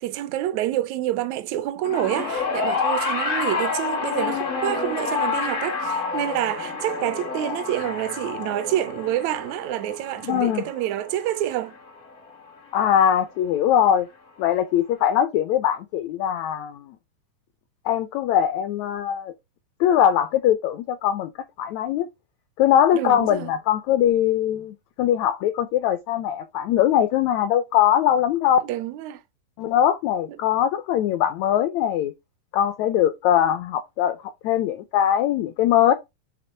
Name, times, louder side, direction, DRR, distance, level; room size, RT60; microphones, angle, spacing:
voice 1, 0.0-11.8 22.9-23.5 28.6-29.2 30.3-30.4, right 13 dB, 80° right, 1.7 m, -27 dB
sound 1, 1.8-12.3 13.3-13.4, left 4 dB, 65° left, 0.7 m, -28 dB
voice 2, 10.2-10.6 12.7-14.1 14.4-16.9 17.9-19.3 19.8-21.3 21.6-22.1 22.6-28.6 29.6-32.1 32.5-34.2 34.4-35.9, left 10 dB, 85° left, 1.6 m, -21 dB
7.4 x 3.6 x 4.4 m
omnidirectional pair, 3.9 m